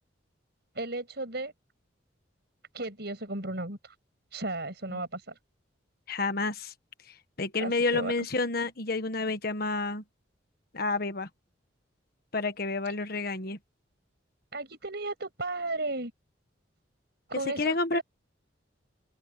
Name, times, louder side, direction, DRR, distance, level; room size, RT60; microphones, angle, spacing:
voice 1, 0.8-1.5 2.7-3.9 4.3-5.3 7.6-8.1 14.5-16.1 17.3-18.0, right 2 dB, 60° right, 7.3 m, -34 dB
voice 2, 6.1-6.7 7.4-10.0 10.7-11.3 12.3-13.6 17.3-18.0, left 3 dB, 50° left, 1.4 m, -29 dB
open air
head